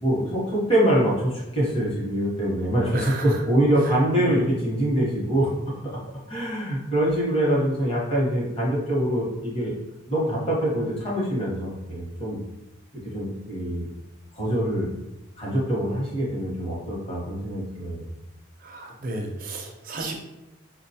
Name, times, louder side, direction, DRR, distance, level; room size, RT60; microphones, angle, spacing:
voice 1, 0.0-5.7 6.3-9.7 10.1-12.4 13.1-13.9 14.3-14.9 15.4-18.0, right 1 dB, 25° left, -5 dB, 0.9 m, -24 dB
voice 2, 2.9-3.2 3.9-4.4 18.6-20.2, right 2 dB, 40° right, 2 dB, 0.5 m, -32 dB
4.7 x 2.2 x 2.7 m, 0.97 s
head